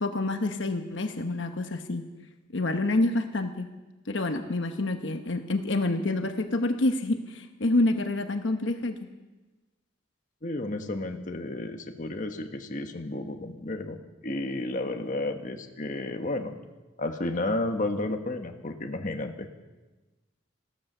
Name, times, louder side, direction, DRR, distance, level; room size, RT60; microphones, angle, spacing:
voice 1, 0.0-2.0 2.5-3.7 4.1-9.0, left 2 dB, 70° left, 6 dB, 1.1 m, -27 dB
voice 2, 10.4-14.0 14.2-16.6 17.0-19.5, left 2 dB, 40° left, 5 dB, 1.2 m, -32 dB
15.5 x 13.5 x 6.7 m, 1.2 s
head